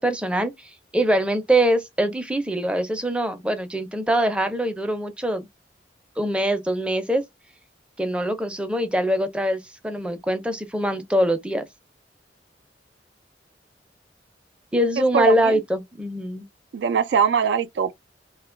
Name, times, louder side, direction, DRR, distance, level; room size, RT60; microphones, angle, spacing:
voice 1, 0.0-5.5 6.2-7.2 8.0-11.7 14.7-16.5, right 1 dB, 5° right, 0.5 m, -23 dB
voice 2, 15.1-15.6 16.7-18.0, right 7 dB, 70° right, 0.3 m, -21 dB
2.7 x 2.2 x 3.7 m
head